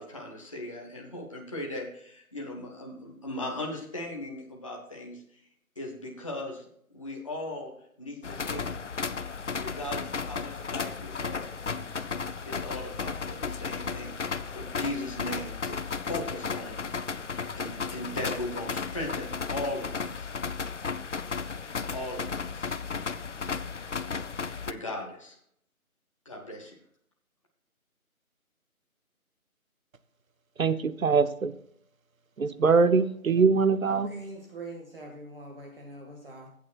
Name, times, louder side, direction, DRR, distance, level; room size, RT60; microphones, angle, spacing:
voice 1, 0.0-5.4 5.8-6.6 6.9-8.7 9.6-11.5 12.5-14.2 14.5-15.8 16.1-17.0 17.6-20.3 21.9-22.7 24.6-25.4 26.2-26.8, left 1 dB, 20° left, 0.9 m, -38 dB
sound 1, 8.2-24.7, left 5 dB, 55° left, 0.6 m, -34 dB
voice 2, 30.6-31.5 32.4-34.1, right 5 dB, 65° right, 0.9 m, -23 dB
voice 3, 34.1-36.5, right 2 dB, 40° right, 1.9 m, -43 dB
15.0 x 8.5 x 2.4 m
figure-of-eight pair, 165°, 43 cm